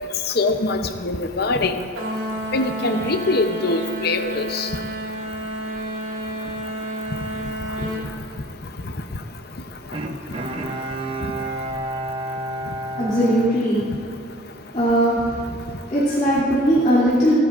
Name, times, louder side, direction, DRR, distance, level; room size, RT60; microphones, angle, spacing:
voice 1, 0.3-1.8 2.5-4.7, left 2 dB, 50° left, 7 dB, 0.7 m, -23 dB
sound 1, 2.0-8.0, equal, 90° right, 2.7 m, -30 dB
Bowed string instrument, 9.9-14.4 14.9-15.0, right 1 dB, 25° right, 0.6 m, -30 dB
voice 2, 13.0-13.8 14.7-15.6 15.9-17.4, right 1 dB, 35° left, -11 dB, 2.8 m, -19 dB
28.5 x 10.0 x 2.5 m, 2.1 s
head